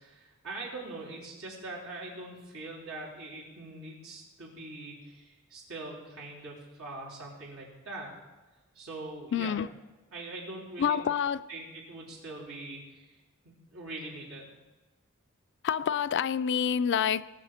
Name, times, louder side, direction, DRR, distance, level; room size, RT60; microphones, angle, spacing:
voice 1, 0.0-8.1 8.8-9.6 10.1-11.0 11.5-13.1 13.4-14.5, right 2 dB, 80° right, 3.7 m, -42 dB
voice 2, 9.3-9.7 10.8-11.4 15.6-17.2, left 7 dB, 55° left, 0.4 m, -27 dB
19.0 x 6.5 x 5.1 m
head